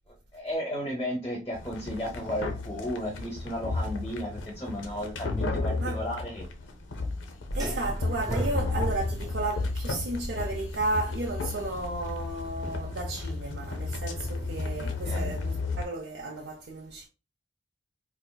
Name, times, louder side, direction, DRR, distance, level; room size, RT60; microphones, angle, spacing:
voice 1, 0.3-6.5 14.8-15.4, equal, 20° left, 0.6 m, -34 dB
sound 1, 1.5-15.8, left 3 dB, 80° left, 0.6 m, -33 dB
sound 2, 7.5-12.5, equal, 20° right, 0.8 m, -35 dB
voice 2, 7.5-17.1, right 2 dB, 65° right, 0.5 m, -33 dB
4.1 x 2.4 x 2.2 m
head